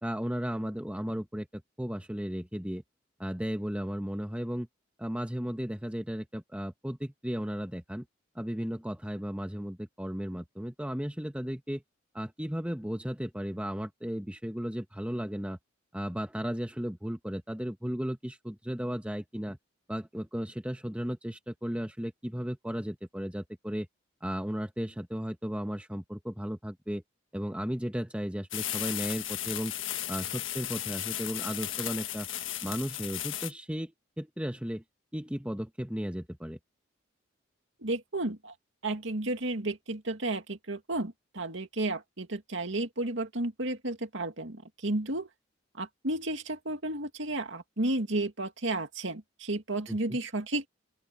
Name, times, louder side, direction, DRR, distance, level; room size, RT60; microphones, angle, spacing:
voice 1, 0.0-2.8 3.2-4.7 5.0-8.0 8.3-11.8 12.1-15.6 15.9-19.6 19.9-23.9 24.2-27.0 27.3-29.7 30.1-32.3 32.6-34.8 35.1-36.6 49.9-50.2, equal, 5° right, 1.3 m, -35 dB
sound 1, 28.5-33.5, left 12 dB, 75° left, 1.5 m, -35 dB
voice 2, 37.8-38.5 38.8-45.3 45.7-50.7, right 2 dB, 70° right, 2.3 m, -32 dB
open air
head